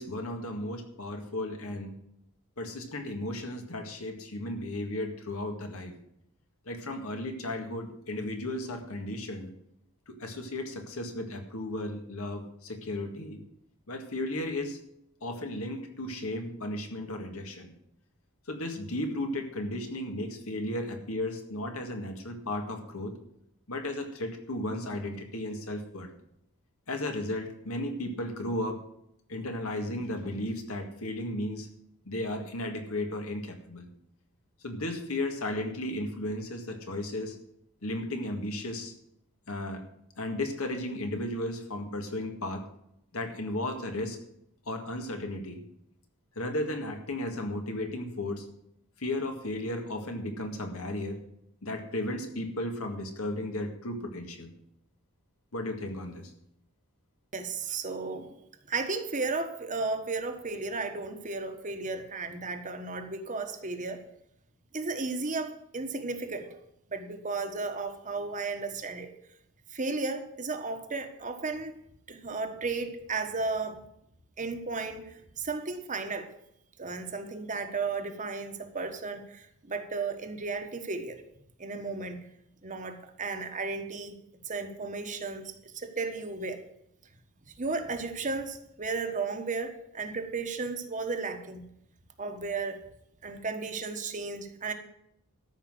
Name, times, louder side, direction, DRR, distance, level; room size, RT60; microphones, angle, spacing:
voice 1, 0.0-1.9 2.6-5.9 6.7-9.5 10.1-13.4 13.9-14.8 15.2-17.7 18.5-23.1 23.7-26.1 26.9-28.8 29.3-31.7 32.1-33.9 34.6-37.4 37.8-38.9 39.5-39.8 40.2-42.6 43.1-44.2 44.7-45.6 46.4-48.5 49.0-51.2 51.6-54.5 55.5-56.3, left 1 dB, 80° left, 4 dB, 1.9 m, -34 dB
voice 2, 57.3-58.4 58.7-64.0 64.7-66.6 66.9-69.1 69.7-71.7 72.1-73.8 74.4-76.3 76.8-81.2 81.6-82.2 82.6-84.2 84.5-86.6 87.6-91.7 92.2-92.8 93.2-94.7, right 3 dB, 35° right, 6 dB, 1.3 m, -34 dB
13.0 x 5.7 x 7.8 m, 0.77 s
head